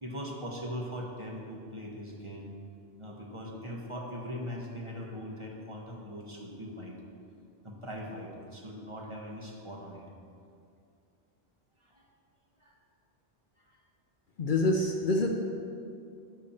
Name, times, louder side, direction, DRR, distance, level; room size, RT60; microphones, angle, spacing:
voice 1, 0.0-2.5 3.0-7.0 7.6-10.0 11.8-12.1 12.6-12.7 13.6-13.8, equal, 30° right, -2 dB, 1.2 m, -40 dB
voice 2, 14.4-15.3, left 2 dB, 55° left, 2 dB, 0.8 m, -26 dB
11.5 x 7.0 x 4.3 m, 2.4 s
omnidirectional pair, 1.2 m